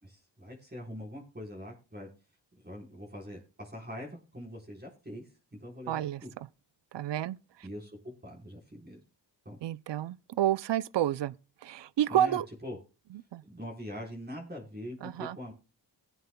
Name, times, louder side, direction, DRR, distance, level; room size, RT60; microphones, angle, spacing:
voice 1, 0.0-2.1 2.5-6.3 7.6-9.0 9.4-9.6 12.1-12.8 13.5-15.5, equal, 20° right, 4.2 m, -43 dB
voice 2, 5.9-6.5 6.9-7.4 9.6-11.3 11.6-12.5 13.3-13.4 15.0-15.4, right 11 dB, 75° right, 0.6 m, -30 dB
20.0 x 9.2 x 2.2 m
cardioid pair, 80°, 43 cm